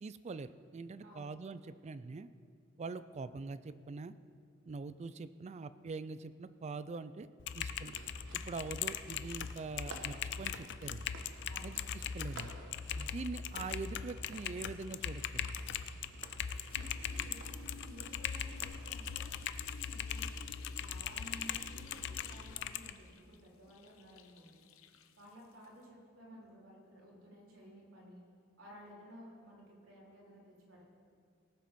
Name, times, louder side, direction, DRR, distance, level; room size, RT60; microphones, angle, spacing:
voice 1, 0.0-2.3 2.8-4.1 4.7-7.3 7.5-8.0 8.3-11.1 11.6-12.5 13.0-15.5, right 4 dB, 35° right, 14 dB, 0.3 m, -44 dB
voice 2, 1.0-1.3 11.5-11.8 16.7-19.4 19.9-20.3 20.8-24.7 25.2-28.2 28.6-30.8, equal, 85° right, -4 dB, 3.6 m, -55 dB
Typing, 7.4-22.9, left 8 dB, 60° left, 0.5 m, -40 dB
sound 1, 7.7-18.6, right 2 dB, 65° right, 1.1 m, -55 dB
sound 2, 16.5-25.8, left 4 dB, 90° left, 0.8 m, -57 dB
18.5 x 7.7 x 5.3 m, 2.2 s
head